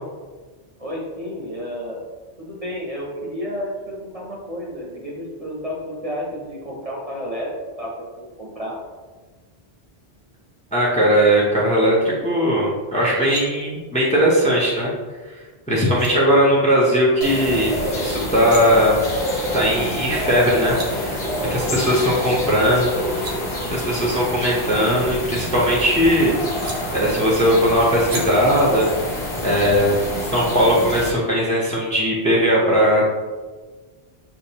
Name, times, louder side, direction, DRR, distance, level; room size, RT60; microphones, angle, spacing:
voice 1, 0.8-2.0 2.4-7.5 7.8-8.7 16.1-16.4, equal, 40° right, -3 dB, 0.8 m, -31 dB
voice 2, 10.7-14.9 15.7-19.0 19.5-23.0 23.7-26.3 26.9-28.9 29.4-33.1, equal, 10° left, -4 dB, 0.7 m, -19 dB
sound 1, 13.0-13.4 15.5-15.6 15.9-16.1 18.2-18.6 20.3-20.4 20.5-20.9 22.8-23.4 24.8-25.9 26.6-26.8 28.0-28.2, right 2 dB, 80° right, 1.1 m, -35 dB
sound 2, 17.2-31.1, left 1 dB, 80° left, 1.2 m, -27 dB
6.5 x 2.5 x 2.9 m, 1.4 s
omnidirectional pair, 1.1 m